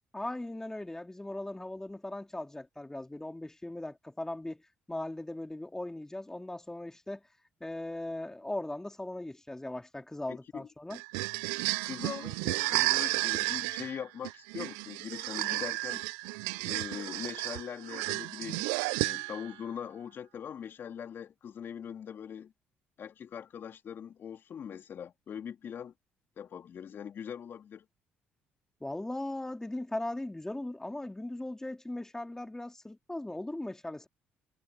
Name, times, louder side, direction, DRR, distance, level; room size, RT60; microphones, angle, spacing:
voice 1, 0.1-4.6 4.9-7.2 7.6-11.0 28.8-34.1, left 1 dB, 10° left, 3.2 m, -38 dB
voice 2, 10.3-10.7 11.8-16.0 16.6-22.5 23.0-25.9 26.4-27.9, left 8 dB, 55° left, 3.1 m, -42 dB
sound 1, 10.9-19.5, right 26 dB, 90° right, 0.3 m, -32 dB
supercardioid pair, 65°, 4 cm